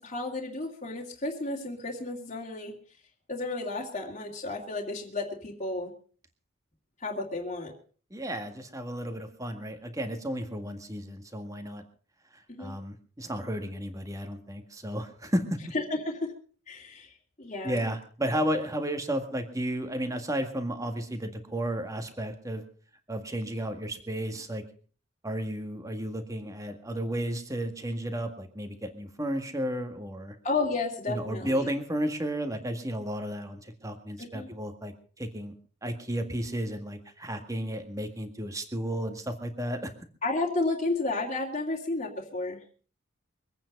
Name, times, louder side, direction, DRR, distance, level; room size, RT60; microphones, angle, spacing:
voice 1, 0.0-2.7 3.3-5.9 7.0-7.7 12.5-12.7 15.7-16.3 16.7-17.1 17.4-17.8 30.4-31.7 34.2-34.5 40.2-42.6, left 2 dB, 35° left, -2 dB, 2.4 m, -32 dB
voice 2, 8.1-11.8 12.3-15.4 17.6-22.6 23.1-24.6 25.2-30.4 31.1-35.5 35.8-39.9, equal, 15° right, 6 dB, 1.9 m, -33 dB
24.0 x 9.1 x 5.3 m, 0.42 s
head